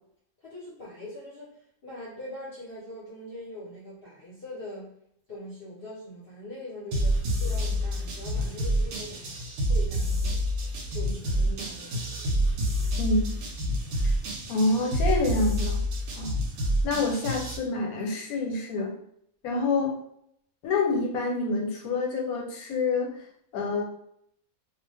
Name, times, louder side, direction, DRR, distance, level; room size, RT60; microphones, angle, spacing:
voice 1, 0.4-4.9 5.3-10.4 10.9-12.2, left 1 dB, 50° left, -7 dB, 0.8 m, -42 dB
sound 1, 6.9-17.6, equal, 85° right, 1.1 m, -28 dB
voice 2, 14.5-15.8 16.2-16.3 16.8-19.0 19.4-20.0 20.6-23.2 23.5-23.8, left 3 dB, 85° left, 1 dB, 1.1 m, -27 dB
2.4 x 2.1 x 3.3 m, 0.70 s
omnidirectional pair, 1.5 m